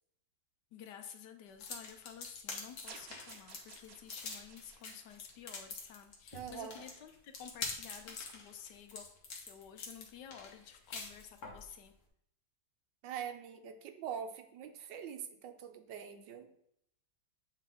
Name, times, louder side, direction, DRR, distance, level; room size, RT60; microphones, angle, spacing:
voice 1, 0.7-11.9, left 9 dB, 75° left, 7 dB, 1.2 m, -52 dB
sound 1, 1.6-11.6, left 4 dB, 55° left, 1.4 m, -45 dB
sound 2, 2.9-6.2, right 5 dB, 60° right, 1.1 m, -55 dB
voice 2, 6.3-6.8 13.0-16.5, right 8 dB, 80° right, 7 dB, 1.3 m, -44 dB
8.4 x 3.3 x 3.6 m, 0.73 s
omnidirectional pair, 2.0 m